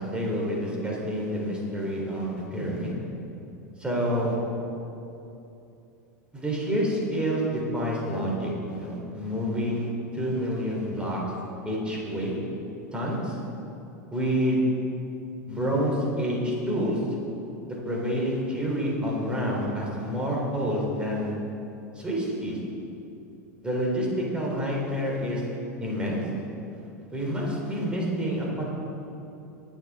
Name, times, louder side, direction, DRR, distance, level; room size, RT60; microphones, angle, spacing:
voice 1, 0.0-2.9 3.8-4.3 6.3-9.9 10.1-11.2 11.6-12.3 12.9-13.4 14.1-14.6 15.5-17.0 17.7-21.3 21.9-22.6 23.6-25.4 25.8-26.2 27.1-28.6, equal, 10° right, -3 dB, 3.2 m, -28 dB
22.5 x 7.6 x 3.6 m, 2.9 s
figure-of-eight pair, 85°, 9 cm